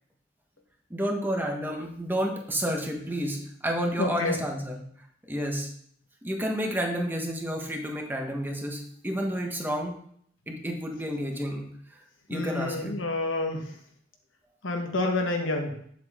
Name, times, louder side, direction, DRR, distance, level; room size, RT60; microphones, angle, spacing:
voice 1, 0.9-4.8 5.3-5.7 6.2-10.0 10.5-11.7 12.3-12.9, equal, 10° right, 2 dB, 1.3 m, -30 dB
voice 2, 4.0-4.4 12.3-13.7 14.6-15.8, left 2 dB, 75° left, 3 dB, 1.5 m, -28 dB
8.8 x 7.7 x 3.7 m, 0.64 s
head